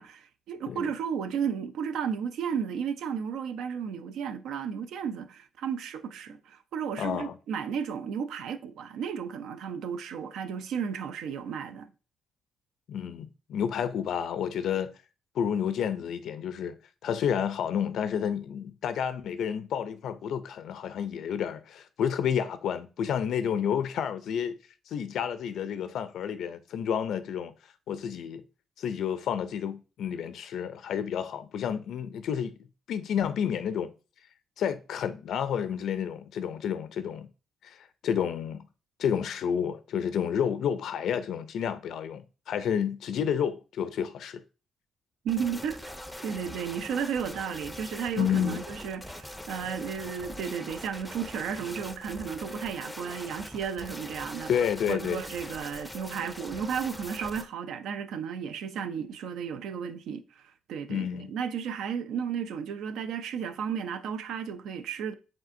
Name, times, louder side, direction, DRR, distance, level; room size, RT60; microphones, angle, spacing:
voice 1, 0.0-11.9 45.2-45.7 46.2-54.5 54.9-60.4 60.7-65.1, right 7 dB, 80° right, 0.4 m, -33 dB
voice 2, 7.0-7.4 12.9-14.9 15.4-16.8 17.0-24.6 24.9-27.5 27.9-28.4 28.8-32.5 32.9-33.9 34.6-37.3 37.6-38.6 39.0-44.4 48.2-48.6 54.5-55.2 60.9-61.3, left 8 dB, 70° left, 0.3 m, -30 dB
sound 1, 45.3-57.4, left 1 dB, ahead, 0.5 m, -42 dB
4.9 x 3.6 x 2.5 m
cardioid pair, 90°, 0 cm